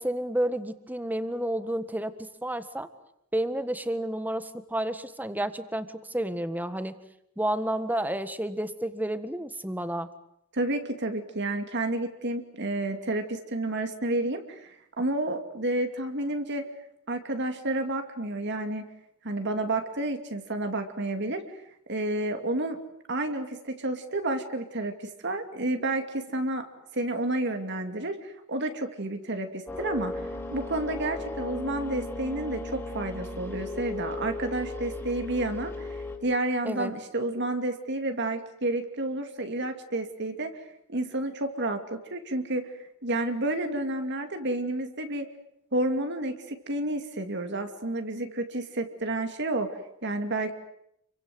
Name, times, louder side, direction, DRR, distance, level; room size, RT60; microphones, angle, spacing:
voice 1, 0.0-2.9 3.3-7.0 7.4-10.1 36.6-36.9, right 1 dB, 10° right, 11 dB, 1.6 m, -30 dB
voice 2, 10.5-16.6 17.1-18.8 19.2-21.4 21.9-22.8 23.1-24.9 25.2-26.7 26.9-30.1 30.5-40.5 40.9-42.7 43.0-45.3 45.7-50.5, right 2 dB, 55° right, 6 dB, 2.5 m, -30 dB
sound 1, 29.7-36.2, left 2 dB, 10° left, 4.4 m, -36 dB
29.5 x 24.0 x 7.9 m, 0.76 s
head